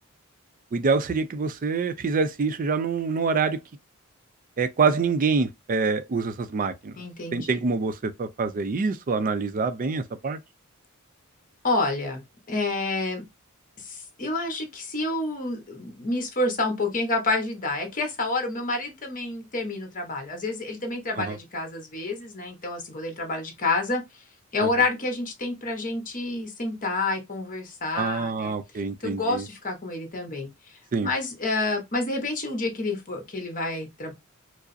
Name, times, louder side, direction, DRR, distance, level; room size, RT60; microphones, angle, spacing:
voice 1, 0.7-3.6 4.6-7.0 7.3-10.4 21.2-21.4 24.6-24.7 28.0-29.5 30.9-31.1, right 4 dB, 40° right, 0.4 m, -26 dB
voice 2, 7.0-7.6 11.6-13.3 13.8-24.0 24.5-28.6 29.0-30.5 31.0-34.1, left 2 dB, 40° left, 1.1 m, -29 dB
4.8 x 2.0 x 2.6 m
head